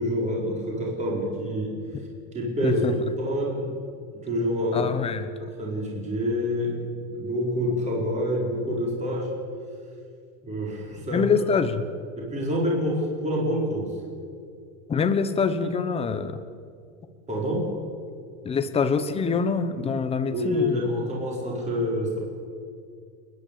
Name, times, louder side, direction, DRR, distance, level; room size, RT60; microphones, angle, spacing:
voice 1, 0.0-1.7 2.3-3.7 4.2-4.9 5.4-6.7 7.0-9.4 10.4-11.4 12.2-13.9 17.3-17.7 20.3-22.2, equal, 15° right, -3 dB, 4.7 m, -27 dB
voice 2, 4.7-5.3 11.1-11.8 14.9-16.4 18.4-20.8, left 5 dB, 15° left, 10 dB, 0.9 m, -25 dB
29.5 x 10.5 x 8.5 m, 2.2 s
supercardioid pair, 160°, 41 cm